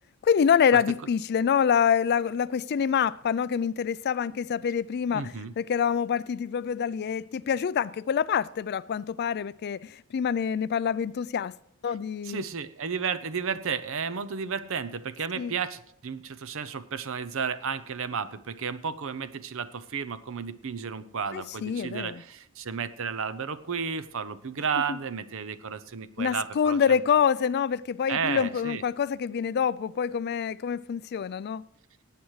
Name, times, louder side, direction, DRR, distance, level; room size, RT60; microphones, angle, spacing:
voice 1, 0.2-11.5 11.8-12.4 15.4-15.5 21.3-22.2 24.9-25.0 26.2-31.6, left 7 dB, 45° left, 0.3 m, -26 dB
voice 2, 5.1-5.5 12.2-27.0 28.1-28.8, right 6 dB, 60° right, 0.7 m, -33 dB
18.0 x 9.2 x 3.2 m
head